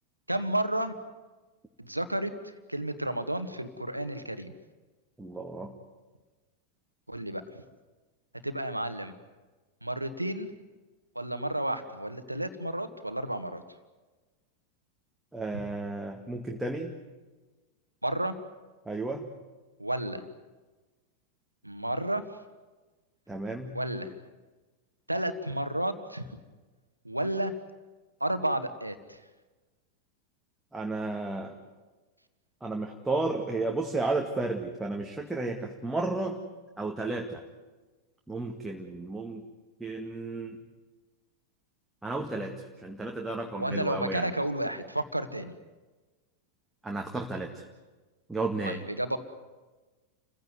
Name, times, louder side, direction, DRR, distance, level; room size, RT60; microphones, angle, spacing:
voice 1, 0.3-0.9 1.8-4.5 7.1-7.4 8.4-9.1 9.8-10.5 11.1-13.6 18.0-18.3 19.8-20.2 21.6-22.2 23.7-24.1 25.1-26.4 27.0-27.5 28.2-29.2 43.6-45.5 48.6-49.2, right 1 dB, 85° right, 9 dB, 1.7 m, -31 dB
voice 2, 5.2-5.7 15.3-17.0 18.9-19.3 23.3-23.8 30.7-31.6 32.6-36.4 36.8-37.4 38.3-39.4 39.8-40.6 42.0-44.3 46.8-47.7 48.3-48.8, right 2 dB, 5° right, 1 dB, 2.0 m, -33 dB
29.0 x 16.0 x 9.6 m, 1.2 s
figure-of-eight pair, 90°, 0 cm